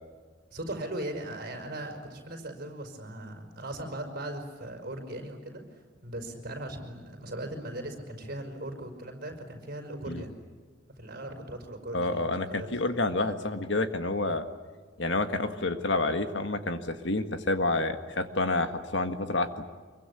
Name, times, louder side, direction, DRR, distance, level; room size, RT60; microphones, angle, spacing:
voice 1, 0.5-10.3 11.0-12.7, right 1 dB, 45° right, 5 dB, 5.4 m, -39 dB
voice 2, 11.9-14.5 15.0-19.6, left 2 dB, 60° left, 8 dB, 1.7 m, -29 dB
25.5 x 23.5 x 8.4 m, 1.5 s
head